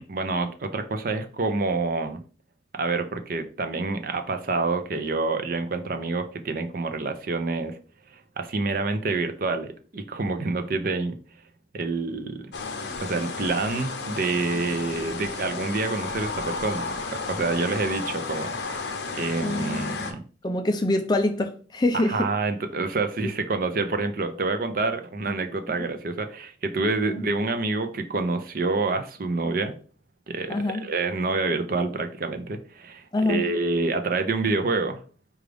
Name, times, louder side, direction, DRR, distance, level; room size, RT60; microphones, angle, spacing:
voice 1, 0.0-2.2 2.7-7.8 8.1-11.1 11.7-12.5 13.0-20.2 21.9-29.7 30.3-35.0, right 3 dB, 45° right, 0.5 m, -27 dB
sound 1, 12.5-20.1, left 4 dB, 65° left, 0.6 m, -33 dB
voice 2, 19.4-20.1 20.4-22.3 23.2-23.3 30.5-30.8 33.1-33.5, left 2 dB, 20° left, 0.3 m, -25 dB
4.9 x 2.4 x 3.3 m
head